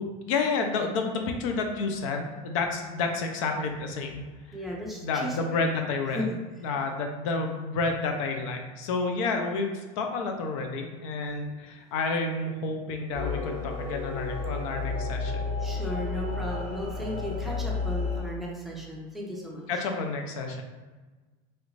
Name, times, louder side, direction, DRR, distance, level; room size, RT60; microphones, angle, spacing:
voice 1, 0.0-4.2 5.0-6.2 6.6-15.5 19.7-20.6, left 3 dB, 80° left, 4 dB, 0.5 m, -30 dB
voice 2, 4.5-5.7 6.1-6.3 15.6-19.8, equal, ahead, -3 dB, 0.5 m, -36 dB
sound 1, 13.1-18.2, left 4 dB, 50° left, 0.9 m, -32 dB
3.1 x 2.5 x 3.1 m, 1.3 s
cardioid pair, 145°, 16 cm